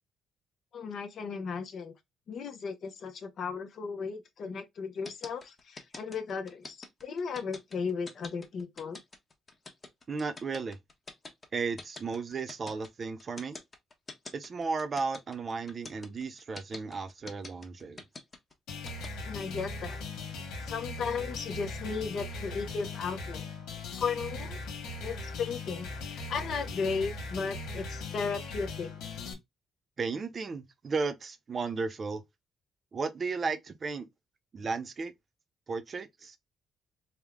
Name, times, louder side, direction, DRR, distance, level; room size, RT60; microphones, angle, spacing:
voice 1, 0.7-1.9 2.3-9.0 19.3-20.0 20.6-23.4 23.9-24.6 25.0-28.9, left 5 dB, 60° left, 0.8 m, -35 dB
sound 1, 5.0-19.1, left 3 dB, 30° left, 1.0 m, -45 dB
voice 2, 10.1-10.8 11.5-13.6 14.3-18.0 30.0-32.2 32.9-34.1 34.5-35.1 35.7-36.4, right 4 dB, 45° right, 0.7 m, -34 dB
sound 2, 18.7-29.3, left 3 dB, 90° left, 1.3 m, -39 dB
3.5 x 2.2 x 3.5 m
cardioid pair, 90°, 0 cm